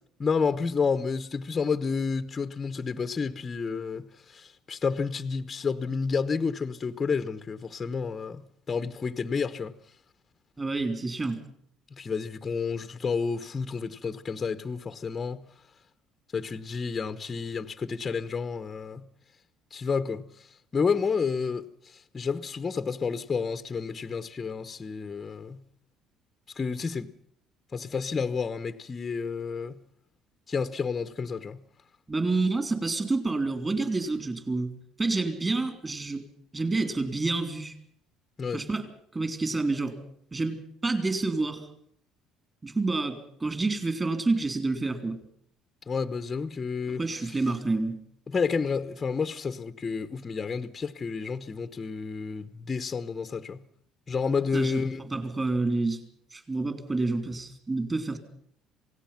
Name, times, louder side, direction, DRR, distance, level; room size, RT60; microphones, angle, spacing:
voice 1, 0.2-8.4 8.7-9.7 11.9-15.4 16.3-19.0 19.7-20.5 20.7-25.6 26.6-27.1 27.7-29.8 30.5-31.6 38.4-38.6 45.9-47.0 48.3-53.6 54.1-55.1, left 5 dB, 25° left, 1.0 m, -30 dB
voice 2, 10.6-11.4 32.1-34.7 35.0-36.2 36.5-37.7 38.5-40.0 40.3-40.6 40.8-41.7 42.6-45.2 46.9-48.0 54.5-54.8 55.1-56.0 56.3-58.2, right 3 dB, 20° right, 3.7 m, -28 dB
27.5 x 18.0 x 5.9 m
cardioid pair, 135°, 0 cm